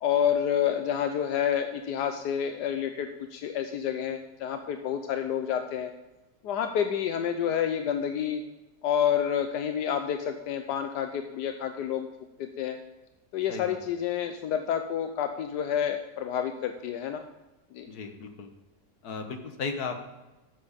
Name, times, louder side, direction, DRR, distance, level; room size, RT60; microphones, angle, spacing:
voice 1, 0.0-5.9 6.4-8.4 8.8-12.1 12.4-12.8 13.3-17.2 17.7-17.9, left 9 dB, 85° left, 7 dB, 1.3 m, -29 dB
voice 2, 13.5-13.8 17.9-18.5 19.0-20.0, left 4 dB, 70° left, 5 dB, 1.7 m, -35 dB
12.0 x 7.6 x 5.2 m, 1.1 s
omnidirectional pair, 1.7 m